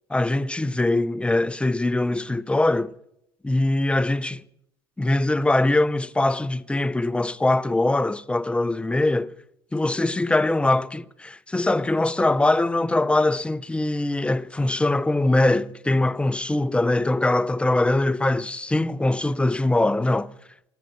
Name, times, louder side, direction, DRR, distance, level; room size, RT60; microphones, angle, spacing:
voice 1, 0.1-2.9 3.4-4.4 5.0-9.3 9.7-20.3, left 2 dB, 10° left, 0.6 m, -22 dB
14.0 x 13.5 x 7.6 m
hypercardioid pair, 65°, 14 cm